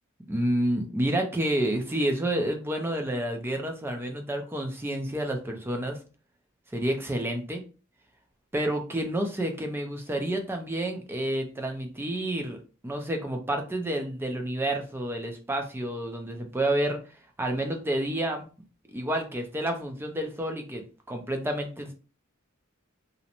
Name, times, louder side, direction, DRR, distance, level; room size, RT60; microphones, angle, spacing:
voice 1, 0.3-6.0 6.7-7.6 8.5-12.6 12.8-17.0 17.4-18.5 18.9-22.0, right 1 dB, 10° right, 4 dB, 0.4 m, -29 dB
2.5 x 2.0 x 2.8 m, 0.36 s
head